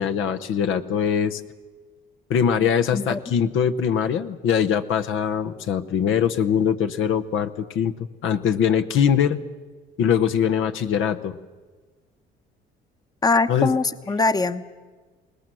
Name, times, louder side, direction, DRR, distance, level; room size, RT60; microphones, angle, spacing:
voice 1, 0.0-1.4 2.3-9.4 10.0-11.4 13.5-13.7, left 8 dB, 70° left, 9 dB, 1.0 m, -22 dB
voice 2, 13.2-14.7, left 3 dB, 20° left, 11 dB, 0.9 m, -22 dB
21.5 x 18.5 x 7.7 m, 1.4 s
supercardioid pair, 70°, 21 cm